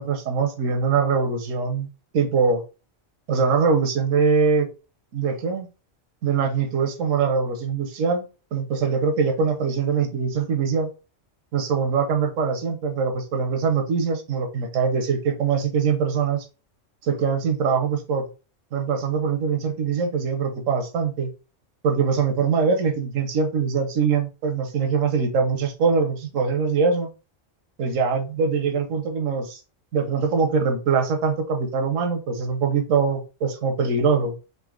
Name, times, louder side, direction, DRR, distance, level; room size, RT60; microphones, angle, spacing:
voice 1, 0.0-1.9 2.1-2.6 3.3-4.7 5.1-5.7 6.2-8.2 8.5-10.9 11.5-16.5 17.0-18.2 18.7-21.3 21.8-27.1 27.8-29.6 29.9-34.4, right 5 dB, 85° right, 4 dB, 1.2 m, -23 dB
4.0 x 2.7 x 3.6 m, 0.32 s
omnidirectional pair, 1.3 m